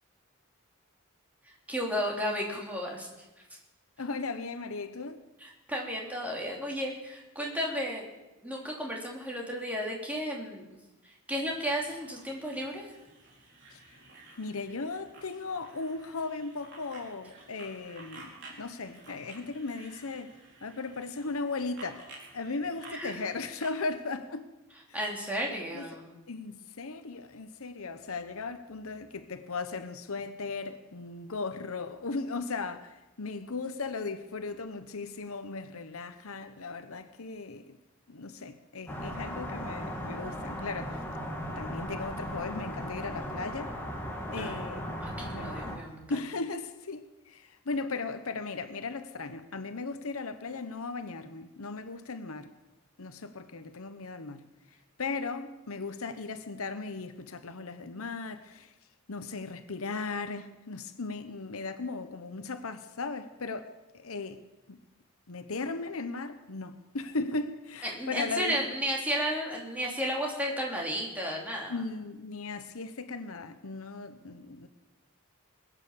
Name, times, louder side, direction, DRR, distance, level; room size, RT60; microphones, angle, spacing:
voice 1, 1.7-3.1 5.4-8.0 8.4-10.7 11.0-12.9 22.9-23.1 24.9-26.2 44.4-44.6 45.0-46.2 67.8-71.8, equal, 5° right, 2.9 m, -33 dB
voice 2, 4.0-5.2 13.7-13.8 14.4-20.3 20.6-24.5 24.9-25.0 25.7-25.9 26.3-37.8 38.1-41.0 41.6-43.8 44.3-45.8 46.1-52.5 53.0-54.5 55.0-58.7 59.1-64.4 64.7-64.8 65.3-68.6 71.7-74.7, left 3 dB, 75° left, 1.0 m, -37 dB
sound 1, 11.5-23.8, right 3 dB, 55° right, 4.4 m, -53 dB
sound 2, 38.9-45.8, equal, 10° left, 2.2 m, -37 dB
21.0 x 8.9 x 7.1 m
head